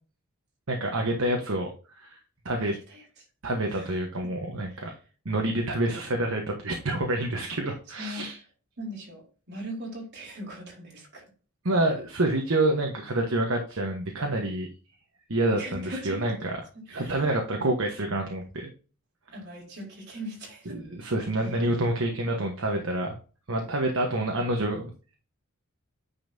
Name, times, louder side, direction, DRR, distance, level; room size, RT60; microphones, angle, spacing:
voice 1, 0.7-1.7 2.0-2.2 2.4-2.8 3.4-4.9 5.2-8.4 11.6-14.7 15.3-16.6 16.9-18.7 20.7-23.2 23.5-25.1, right 1 dB, 70° right, 1.3 m, -27 dB
voice 2, 2.6-3.0 3.7-3.9 4.7-4.9 8.0-8.3 8.8-11.2 15.6-16.3 16.9-17.2 19.3-20.9, equal, 55° right, 4.2 m, -40 dB
9.8 x 5.4 x 2.8 m
head